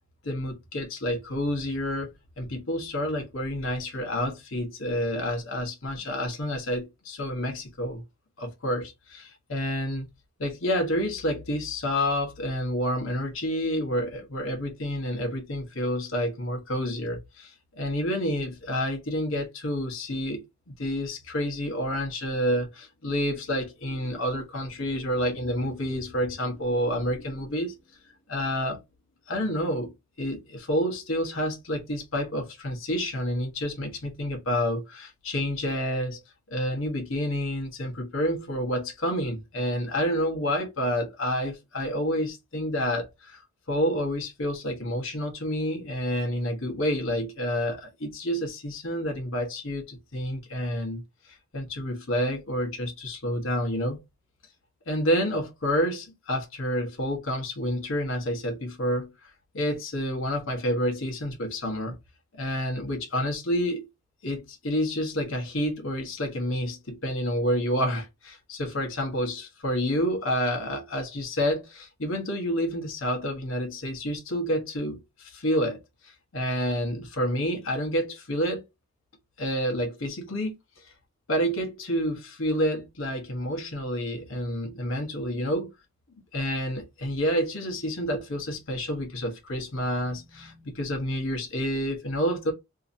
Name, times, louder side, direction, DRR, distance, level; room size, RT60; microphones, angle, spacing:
voice 1, 0.2-2.1 2.4-8.0 8.4-10.1 10.4-27.7 28.3-28.8 29.3-29.9 30.2-36.2 36.5-51.0 51.3-54.0 54.9-62.0 62.3-63.9 64.2-78.6 79.4-80.8 81.3-85.7 86.3-92.5, equal, 75° left, 1.0 m, -29 dB
2.8 x 2.6 x 2.6 m
head